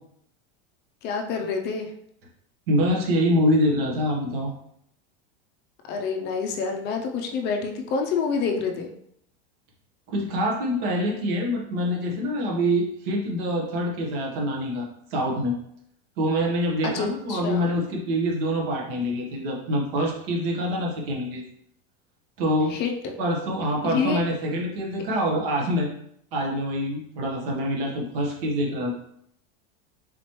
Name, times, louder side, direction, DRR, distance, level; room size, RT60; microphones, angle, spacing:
voice 1, 1.0-1.9 5.9-8.9 16.8-17.7 22.7-22.9 23.8-24.2, left 5 dB, 35° left, 3 dB, 0.4 m, -27 dB
voice 2, 2.7-4.5 10.1-14.9 15.1-15.6 16.2-21.5 22.4-22.8 23.2-25.9 26.3-29.0, equal, 65° right, -1 dB, 1.2 m, -25 dB
4.0 x 3.0 x 3.0 m, 0.71 s
supercardioid pair, 145°, 32 cm